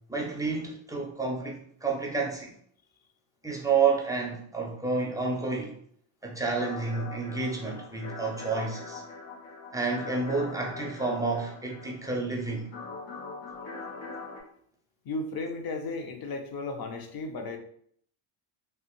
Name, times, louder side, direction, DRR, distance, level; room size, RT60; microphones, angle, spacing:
voice 1, 0.1-2.6 3.4-5.8 6.2-9.0 9.7-12.7, right 4 dB, 10° right, -1 dB, 0.4 m, -30 dB
sound 1, 6.6-14.4, left 4 dB, 90° left, 1.0 m, -42 dB
voice 2, 15.1-17.6, left 3 dB, 50° left, 5 dB, 0.6 m, -34 dB
3.2 x 2.5 x 2.9 m, 0.64 s
cardioid pair, 140°, 49 cm